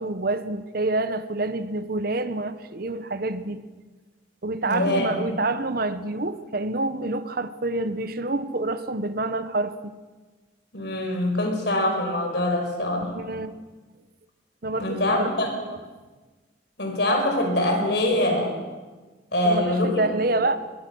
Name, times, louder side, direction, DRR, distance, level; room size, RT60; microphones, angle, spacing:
voice 1, 0.0-3.6 4.4-9.9 13.1-13.5 14.6-15.3 15.7-15.8 19.4-20.6, right 2 dB, 50° right, 12 dB, 1.0 m, -27 dB
voice 2, 4.6-5.4 10.7-13.1 14.8-15.5 16.8-18.6 19.3-20.0, left 1 dB, 60° left, 3 dB, 5.2 m, -24 dB
22.5 x 21.5 x 6.3 m, 1.3 s
head